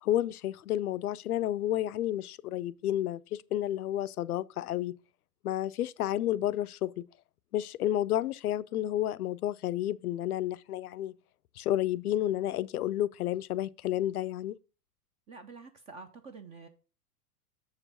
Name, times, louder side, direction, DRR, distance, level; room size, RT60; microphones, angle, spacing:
voice 1, 0.0-4.9 5.4-7.0 7.5-11.2 11.6-14.5, left 13 dB, 75° left, 0.5 m, -31 dB
voice 2, 15.3-16.7, right 4 dB, 15° right, 0.3 m, -47 dB
6.6 x 4.8 x 5.5 m
figure-of-eight pair, 90°, 46 cm